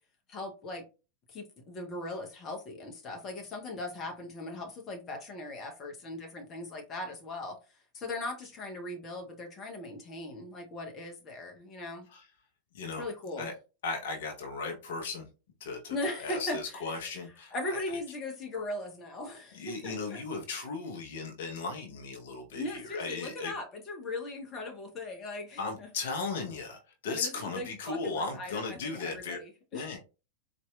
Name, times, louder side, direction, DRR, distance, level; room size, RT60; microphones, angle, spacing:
voice 1, 0.3-0.8 1.3-7.6 7.9-12.1 13.0-13.5 15.9-16.9 17.5-20.2 22.5-25.9 27.1-30.0, left 2 dB, 30° left, 0.8 m, -39 dB
voice 2, 13.8-15.3 15.6-17.8 19.5-23.5 25.6-29.4 29.7-30.0, left 4 dB, 55° left, 0.8 m, -36 dB
4.1 x 2.6 x 2.2 m
figure-of-eight pair, 90°, 0 cm